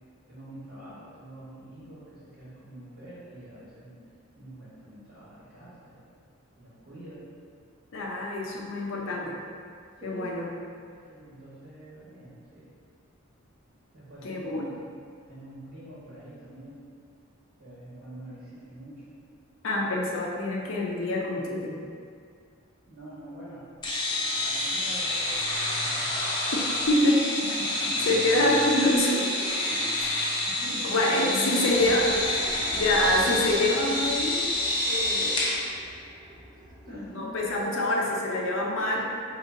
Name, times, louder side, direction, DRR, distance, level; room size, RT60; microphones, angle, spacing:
voice 1, 0.3-4.0 4.4-6.0 6.6-7.2 10.0-10.4 10.9-12.7 13.9-14.7 15.3-16.8 17.6-19.2 22.9-23.7 24.4-26.2 27.4-28.8 29.1-30.1 30.5-33.1 36.9-37.4 37.6-37.8 38.9-39.0, equal, 50° right, -10 dB, 1.2 m, -43 dB
voice 2, 7.9-9.4 10.0-10.5 14.2-14.6 19.6-21.8 26.5-26.6 26.9-27.3 28.1-29.2 30.8-32.1 32.8-34.5 34.8-35.5 36.9-39.0, left 1 dB, 65° left, -1 dB, 0.6 m, -26 dB
sound 1, 23.8-35.6, left 1 dB, 25° left, 0.6 m, -28 dB
sound 2, 31.6-37.5, equal, 20° right, 0.4 m, -47 dB
3.3 x 2.9 x 3.7 m, 2.2 s
head